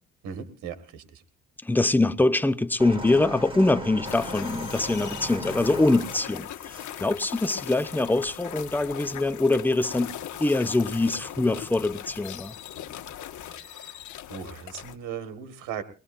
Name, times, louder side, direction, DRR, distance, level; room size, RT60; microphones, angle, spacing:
voice 1, 0.2-1.2 13.5-14.0 14.3-15.8, right 8 dB, 85° right, 1.8 m, -38 dB
voice 2, 1.6-10.1 10.4-12.6, left 2 dB, 5° left, 0.7 m, -24 dB
sound 1, 2.8-6.9 7.8-7.9, right 1 dB, 15° right, 4.5 m, -38 dB
sound 2, 4.0-15.0, left 10 dB, 75° left, 1.6 m, -39 dB
23.0 x 19.5 x 2.6 m
cardioid pair, 90°, 30 cm